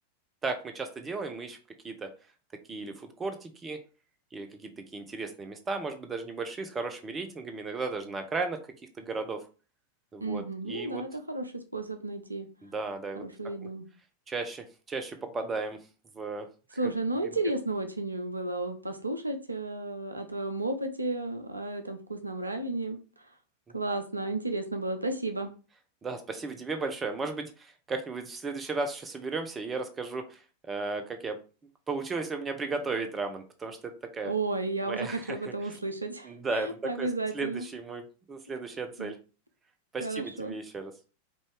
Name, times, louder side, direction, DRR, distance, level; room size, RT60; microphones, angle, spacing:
voice 1, 0.4-1.6 1.8-2.1 2.7-3.8 4.3-8.6 9.0-9.4 10.1-11.0 12.6-13.2 14.3-15.8 16.1-16.9 17.2-17.4 26.0-31.4 31.9-34.3 34.9-35.8 36.2-37.1 37.3-39.2 39.9-40.9, right 3 dB, 20° right, 7 dB, 0.8 m, -35 dB
voice 2, 10.2-12.5 13.1-13.9 16.8-23.3 23.7-25.5 34.2-37.6 39.0-39.1 40.0-40.5, right 2 dB, 80° right, 7 dB, 0.5 m, -33 dB
5.2 x 2.6 x 3.4 m, 0.35 s
figure-of-eight pair, 90°, 0 cm